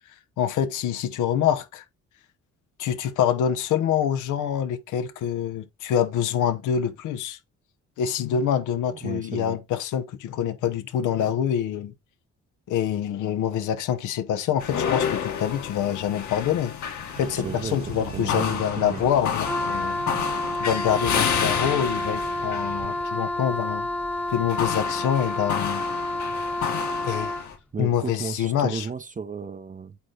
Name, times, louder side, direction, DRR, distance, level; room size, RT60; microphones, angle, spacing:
voice 1, 0.4-1.8 2.8-7.4 8.0-11.9 12.7-16.7 17.2-20.0 20.6-23.9 24.3-25.8 27.0-27.3 27.8-28.9, left 9 dB, 85° left, 1.0 m, -26 dB
voice 2, 9.0-9.6 17.4-17.8 18.1-19.0 27.7-30.0, right 5 dB, 25° right, 0.6 m, -34 dB
sound 1, 14.6-27.5, left 7 dB, 70° left, 2.0 m, -30 dB
sound 2, 17.2-23.0, right 7 dB, 65° right, 1.8 m, -41 dB
Wind instrument woodwind instrument, 19.4-27.6, left 1 dB, 5° left, 1.0 m, -29 dB
8.5 x 3.9 x 3.3 m
cardioid pair, 90°, 30 cm